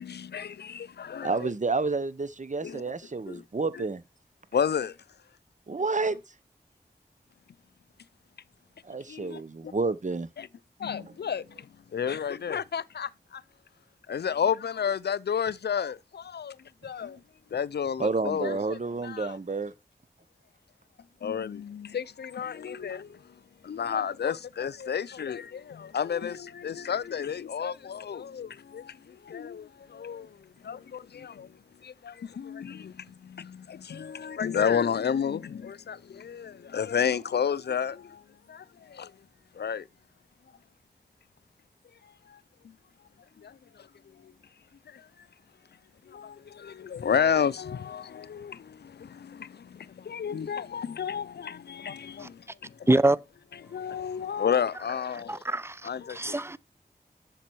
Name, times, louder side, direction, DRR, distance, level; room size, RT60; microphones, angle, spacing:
voice 1, 0.0-1.5 2.6-2.8 3.3-3.4 3.7-3.8 4.5-4.9 9.1-9.7 10.4-10.5 10.8-13.4 14.1-16.6 16.8-17.2 17.5-19.3 21.2-23.3 23.6-39.1 39.5-39.9 42.0-42.4 42.6-42.7 43.4-43.9 44.2-44.3 44.9-45.1 46.1-52.9 53.6-55.4 55.8-56.4, left 7 dB, 85° left, 0.4 m, -32 dB
voice 2, 1.2-4.0 5.7-6.2 8.8-10.3 18.0-19.7, right 3 dB, 50° right, 0.8 m, -30 dB
voice 3, 55.3-56.6, right 2 dB, 15° right, 0.5 m, -25 dB
7.4 x 7.0 x 4.6 m
wide cardioid pair, 50°, 17 cm